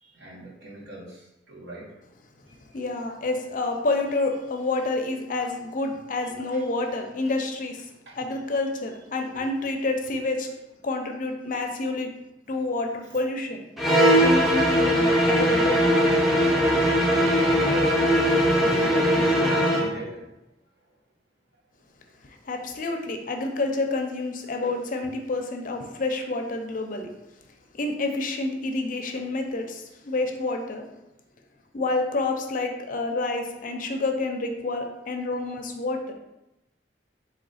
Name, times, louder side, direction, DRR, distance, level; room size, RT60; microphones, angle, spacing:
voice 1, 0.0-1.8 6.5-6.6 8.0-8.2 16.4-20.3 25.0-25.1, right 1 dB, 70° right, -6 dB, 1.6 m, -39 dB
voice 2, 2.7-7.9 8.2-10.5 10.8-12.1 12.5-13.6 14.2-15.8 22.4-27.1 27.7-30.9 31.7-36.1, left 2 dB, 50° left, 4 dB, 0.5 m, -28 dB
sound 1, 13.8-19.9, equal, ahead, 0.6 m, -20 dB
3.9 x 3.0 x 4.1 m, 0.92 s
head